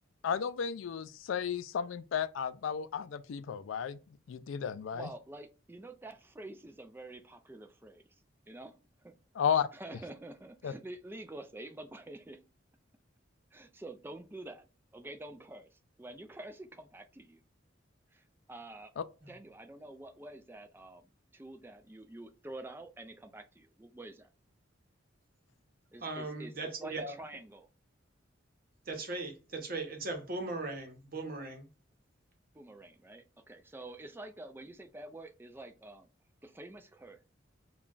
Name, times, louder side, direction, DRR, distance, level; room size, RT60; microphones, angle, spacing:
voice 1, 0.2-4.0 4.3-5.1 9.4-9.7 10.6-10.7, left 7 dB, 80° left, 0.3 m, -33 dB
voice 2, 4.9-9.1 9.5-12.4 13.5-14.6 14.9-17.4 18.1-18.9 19.3-24.3 25.9-27.7 32.5-36.1 36.4-37.2, right 2 dB, 10° right, 0.3 m, -48 dB
voice 3, 26.0-27.1 28.9-31.7, right 3 dB, 45° right, 0.9 m, -38 dB
5.5 x 2.3 x 2.4 m
head